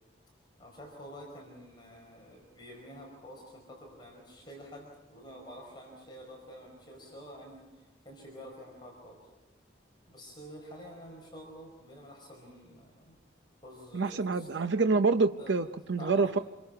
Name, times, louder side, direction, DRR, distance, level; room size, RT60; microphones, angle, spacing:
voice 1, 0.6-9.3 10.1-13.1 13.6-14.7 15.4-15.6 16.0-16.3, equal, 25° left, -1 dB, 4.9 m, -49 dB
voice 2, 13.9-16.4, right 4 dB, 75° right, 8 dB, 0.6 m, -27 dB
27.5 x 23.0 x 5.8 m, 1.1 s
head